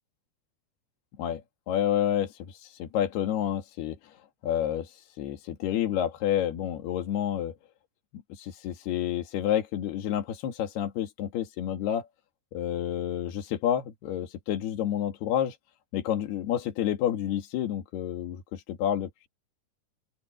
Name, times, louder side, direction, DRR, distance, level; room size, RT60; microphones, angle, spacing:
voice 1, 1.2-4.1 4.4-7.6 8.1-12.1 12.5-15.6 15.9-19.3, left 10 dB, 80° left, 4.1 m, -29 dB
open air
omnidirectional pair, 4.5 m